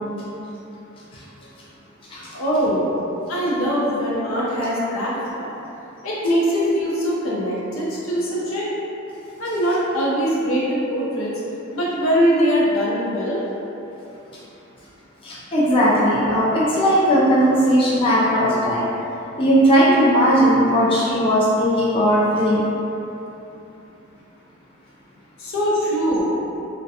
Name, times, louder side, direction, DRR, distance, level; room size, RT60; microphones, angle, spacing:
voice 1, 2.3-2.9 3.3-5.5 6.0-8.6 9.4-11.3 11.7-13.4 25.4-26.3, equal, 80° left, -6 dB, 0.6 m, -22 dB
voice 2, 15.2-18.9 19.4-22.6, equal, 25° left, -8 dB, 0.4 m, -17 dB
2.5 x 2.1 x 2.6 m, 2.9 s
head